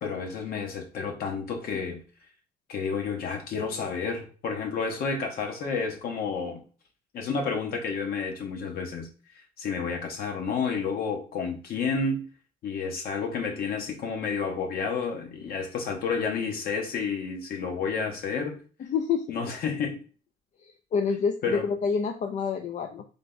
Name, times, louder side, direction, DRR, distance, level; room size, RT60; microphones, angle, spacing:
voice 1, 0.0-2.0 2.7-6.6 7.1-9.1 9.6-12.3 12.6-18.6 19.3-20.0 21.4-21.7, left 5 dB, 60° left, 1.3 m, -30 dB
voice 2, 18.8-19.3 20.6-23.0, left 6 dB, 45° left, 0.5 m, -28 dB
3.8 x 3.3 x 3.9 m
cardioid pair, 110°, 17 cm